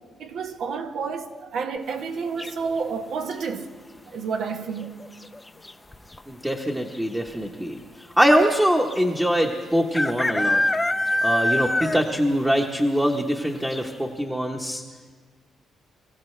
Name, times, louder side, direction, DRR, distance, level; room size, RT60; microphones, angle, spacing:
voice 1, 0.2-3.7 4.1-5.0, right 5 dB, 70° right, 1.2 m, -30 dB
sound 1, 2.4-2.9 4.7-5.1 5.3-5.4 5.6-6.2 6.9-7.0 7.3-7.4 8.9-9.0 9.9-12.2 12.6-12.7 13.2-13.3 13.7-13.8, left 1 dB, 15° left, 0.6 m, -24 dB
voice 2, 6.3-7.8 8.2-10.6 11.2-14.8, equal, 10° right, 1.1 m, -23 dB
24.0 x 15.0 x 3.3 m
cardioid pair, 90°, 0 cm